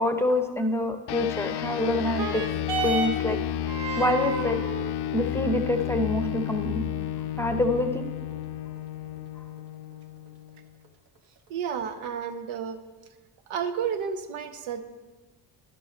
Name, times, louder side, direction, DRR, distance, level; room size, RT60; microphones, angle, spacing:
voice 1, 0.0-2.5 2.8-3.4 4.0-4.6 5.1-6.9 7.4-8.1, left 1 dB, 5° left, 6 dB, 0.7 m, -26 dB
sound 1, 1.1-10.8, left 11 dB, 55° left, 0.5 m, -32 dB
sound 2, 1.9-10.9 11.7-11.8, right 3 dB, 55° right, 1.3 m, -36 dB
voice 2, 11.5-12.8 13.5-14.8, right 7 dB, 75° right, 8 dB, 0.8 m, -31 dB
10.0 x 5.4 x 4.3 m, 1.2 s
supercardioid pair, 60°, 49 cm